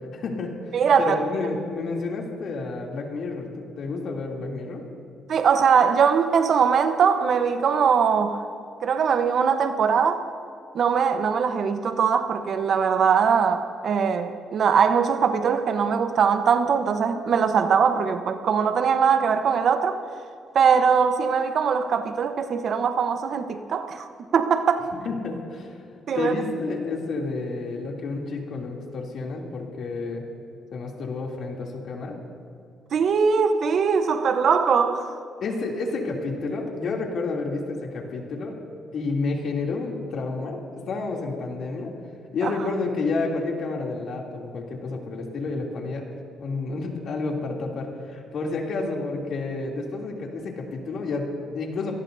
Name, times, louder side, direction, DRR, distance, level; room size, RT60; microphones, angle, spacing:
voice 1, 0.1-0.5 1.0-4.8 25.0-25.8 26.1-30.2 30.7-32.2 35.4-38.6 38.9-40.6 40.9-41.9 42.3-46.0 46.4-51.9, left 3 dB, 65° left, 3.0 m, -30 dB
voice 2, 0.7-1.2 5.3-8.4 8.8-10.2 10.7-20.0 20.5-24.1 24.3-24.9 26.1-26.3 32.9-35.1 42.4-42.5, right 6 dB, 60° right, 1.0 m, -21 dB
27.5 x 18.5 x 2.8 m
cardioid pair, 90°, 0 cm